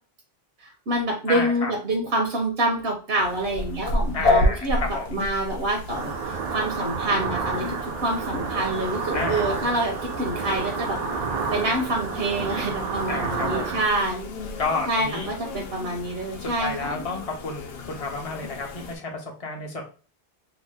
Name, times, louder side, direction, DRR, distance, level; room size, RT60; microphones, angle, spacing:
voice 1, 0.6-11.0 11.5-14.3 14.9-17.0, right 1 dB, 70° right, 1 dB, 0.9 m, -27 dB
voice 2, 1.3-1.7 4.1-5.1 9.1-9.4 13.1-13.8 14.6-15.3 16.4-19.8, left 3 dB, 40° left, 1 dB, 0.7 m, -31 dB
sound 1, 3.2-19.0, left 2 dB, 70° left, 0.8 m, -31 dB
sound 2, 5.9-13.9, right 5 dB, 55° right, 0.4 m, -30 dB
2.8 x 2.0 x 3.3 m, 0.37 s
omnidirectional pair, 1.1 m